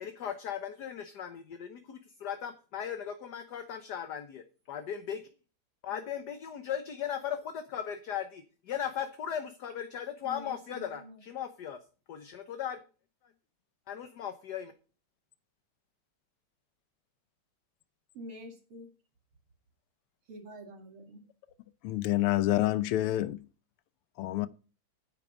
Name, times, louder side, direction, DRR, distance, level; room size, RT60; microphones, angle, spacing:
voice 1, 0.0-5.2 5.8-11.8 12.1-12.8 13.9-14.7, left 9 dB, 55° left, 1.4 m, -37 dB
voice 2, 10.2-11.2 18.1-18.9 20.3-21.2, equal, 85° right, 3.2 m, -47 dB
voice 3, 21.8-23.5 24.2-24.5, left 15 dB, 90° left, 1.6 m, -28 dB
9.9 x 8.3 x 5.1 m
omnidirectional pair, 2.4 m